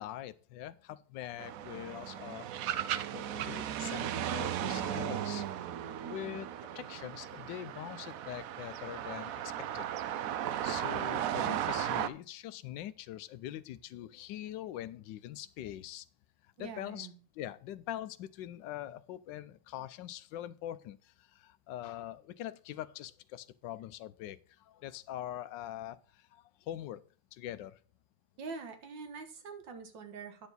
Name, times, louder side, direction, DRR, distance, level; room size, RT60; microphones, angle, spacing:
voice 1, 0.0-2.7 3.1-5.4 6.0-6.5 6.7-9.9 10.6-16.1 16.4-17.1 17.3-27.0 27.3-27.8, left 12 dB, 85° left, 15 dB, 1.3 m, -43 dB
sound 1, 1.4-12.1, right 10 dB, 70° right, 0.8 m, -36 dB
voice 2, 6.0-6.4 16.6-17.1 28.4-30.5, right 5 dB, 90° right, 7 dB, 2.1 m, -45 dB
9.9 x 6.9 x 4.0 m, 0.41 s
omnidirectional pair, 1.9 m